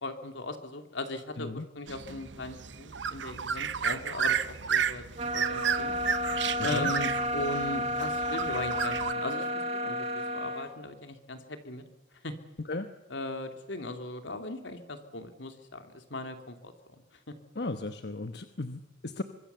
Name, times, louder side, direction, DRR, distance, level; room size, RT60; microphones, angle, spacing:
voice 1, 0.0-5.9 6.6-9.5 9.8-11.8 12.2-12.3 13.1-17.0, left 2 dB, 80° left, 7 dB, 2.7 m, -38 dB
sound 1, 1.9-9.1, right 7 dB, 80° right, 0.9 m, -32 dB
sound 2, 5.2-10.7, equal, 30° right, 2.0 m, -31 dB
voice 2, 17.6-19.2, left 2 dB, 60° left, 8 dB, 1.1 m, -35 dB
24.5 x 23.0 x 6.9 m, 0.96 s
head